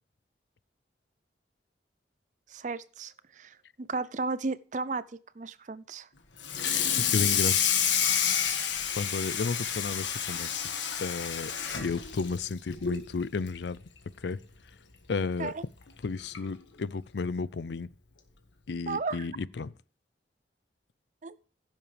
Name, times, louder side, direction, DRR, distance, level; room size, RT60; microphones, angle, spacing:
voice 1, 2.5-6.1 6.7-6.8 15.4-15.6 18.9-19.3 21.2-21.4, right 3 dB, 40° right, 0.5 m, -35 dB
Water tap faucet / Sink (filling or washing), 6.4-13.1 13.5-13.7 14.1-14.2 14.6-14.7 15.8-15.9 16.3-16.6, left 8 dB, 90° left, 1.6 m, -29 dB
voice 2, 7.0-7.6 9.0-10.6 11.0-11.5 11.8-13.8 14.2-14.4 15.1-15.5 16.0-17.9 18.7-19.7, left 4 dB, 70° left, 0.5 m, -32 dB
15.5 x 7.3 x 3.4 m
head